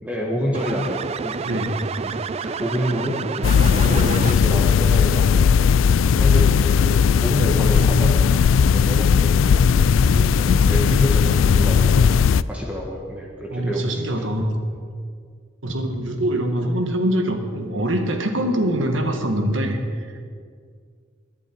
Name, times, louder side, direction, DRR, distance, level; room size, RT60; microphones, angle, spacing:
voice 1, 0.0-1.6 2.0-3.2 3.8-5.5 6.1-8.2 8.7-9.6 10.4-11.9 12.5-14.3 18.8-18.9, equal, 5° right, -2 dB, 1.5 m, -28 dB
sound 1, 0.5-4.7, right 5 dB, 30° right, 0.3 m, -30 dB
voice 2, 1.4-1.9 10.0-10.8 13.5-14.6 15.6-20.1, right 1 dB, 80° right, 5 dB, 1.7 m, -24 dB
sound 2, 3.4-12.4, left 6 dB, 85° left, 0.3 m, -17 dB
21.5 x 11.0 x 4.6 m, 2.1 s
head